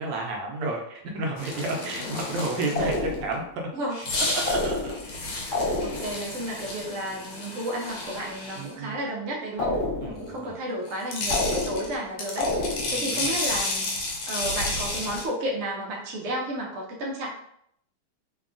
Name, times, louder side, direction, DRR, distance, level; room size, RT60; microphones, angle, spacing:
voice 1, 0.0-3.5 4.1-4.9 8.6-9.0 10.0-10.5 12.9-13.4, right 2 dB, 70° right, 1 dB, 1.1 m, -31 dB
sound 1, 1.4-3.2 3.9-8.7 10.9-15.3, left 2 dB, 80° left, 1.5 m, -32 dB
sound 2, 2.8-3.5 4.5-5.2 5.5-6.3 9.6-10.3 11.3-12.0 12.4-13.1, left 2 dB, 50° left, 1.0 m, -28 dB
voice 2, 5.8-9.8 10.0-13.9 14.3-17.4, right 1 dB, 90° right, -2 dB, 0.6 m, -32 dB
3.5 x 2.3 x 2.4 m, 0.71 s
omnidirectional pair, 2.3 m